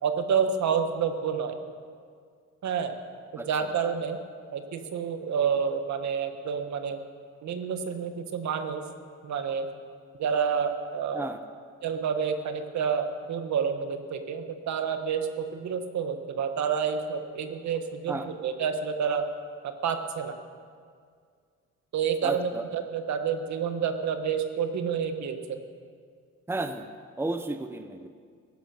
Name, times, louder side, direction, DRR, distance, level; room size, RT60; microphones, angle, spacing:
voice 1, 0.0-1.6 2.6-3.0 3.3-4.2 4.5-7.0 7.4-8.8 9.2-9.7 10.2-11.2 11.8-19.2 19.6-20.4 21.9-25.6, right 7 dB, 65° right, 7 dB, 1.4 m, -29 dB
voice 2, 3.4-3.7 11.1-11.4 18.1-18.3 22.2-22.6 26.5-26.9 27.2-28.1, right 2 dB, 10° right, 8 dB, 0.8 m, -33 dB
16.0 x 11.0 x 6.6 m, 2.1 s
cardioid pair, 90°, 30 cm